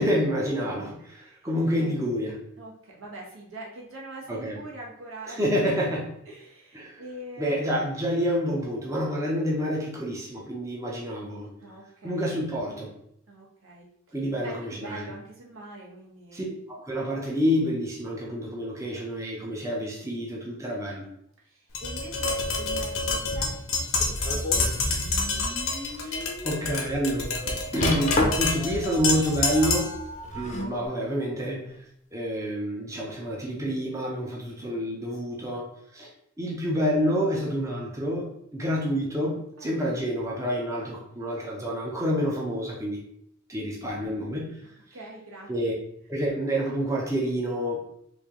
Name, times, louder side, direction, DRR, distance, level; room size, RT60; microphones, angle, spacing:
voice 1, 0.0-2.4 4.3-4.6 5.3-6.0 6.7-7.0 7.4-11.5 12.0-12.9 14.1-15.1 16.3-21.1 26.0-29.9 30.4-31.7 32.1-36.1 36.4-43.0 43.5-44.5 45.5-45.7 46.1-47.8, equal, 15° right, -3 dB, 0.5 m, -28 dB
voice 2, 1.0-1.4 2.6-5.4 6.3-7.8 11.6-12.3 13.3-16.4 21.4-25.5 39.6-39.8 43.9-44.1 44.9-45.5, right 2 dB, 75° right, -3 dB, 1.1 m, -44 dB
Tap, 21.7-30.0, left 3 dB, 80° left, 0.8 m, -28 dB
sound 1, 23.9-24.7 25.2-25.3 25.9-26.0 27.8-28.7 30.1-30.8 31.7-31.8, left 2 dB, 35° left, 0.6 m, -28 dB
sound 2, 24.0-30.9, equal, 50° right, 0.7 m, -40 dB
3.1 x 2.6 x 3.6 m, 0.74 s
head